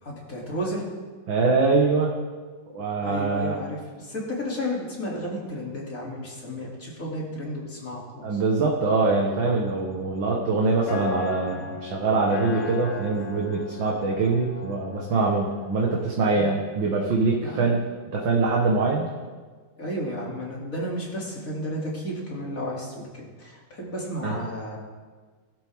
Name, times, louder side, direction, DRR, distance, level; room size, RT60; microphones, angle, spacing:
voice 1, 0.0-0.9 3.0-8.4 13.1-13.3 16.4-16.5 17.4-17.7 19.8-24.8, equal, 35° left, -4 dB, 3.5 m, -33 dB
voice 2, 1.3-2.1 2.7-3.6 8.2-17.8 18.1-19.1 24.2-24.4, right 3 dB, 60° right, -2 dB, 2.2 m, -23 dB
sound 1, 9.2-16.2, left 5 dB, 70° left, 1.9 m, -37 dB
21.5 x 12.0 x 3.7 m, 1.5 s
omnidirectional pair, 2.4 m